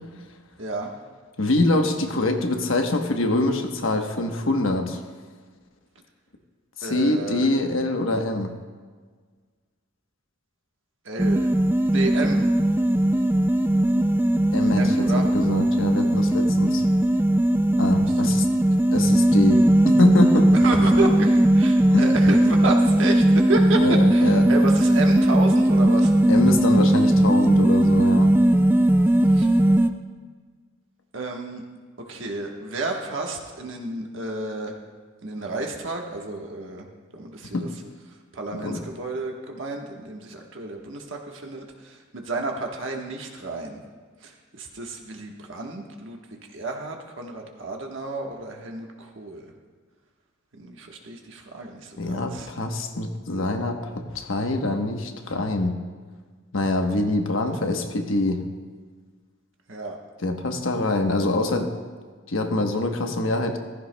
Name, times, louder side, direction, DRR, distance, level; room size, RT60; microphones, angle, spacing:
voice 1, 0.6-0.9 6.8-7.5 11.0-11.5 11.9-12.4 14.7-15.3 18.0-18.1 18.5-18.7 20.5-26.1 29.3-29.5 31.1-31.6 32.1-34.8 35.2-36.9 37.1-37.7 38.1-43.8 44.2-46.2 46.5-49.5 50.5-52.5 59.7-60.0, right 2 dB, 65° right, 1 dB, 1.3 m, -31 dB
voice 2, 1.4-5.0 6.8-8.5 14.5-16.9 17.8-18.5 18.9-19.7 20.0-20.5 21.9-22.1 23.8-24.5 26.3-28.3 37.5-37.7 38.6-38.8 52.0-55.8 56.5-58.4 60.2-61.7 62.3-63.6, left 2 dB, 75° left, 4 dB, 1.1 m, -24 dB
sound 1, 11.2-29.9, right 1 dB, 10° right, 0.3 m, -18 dB
15.0 x 14.5 x 2.2 m, 1.5 s
head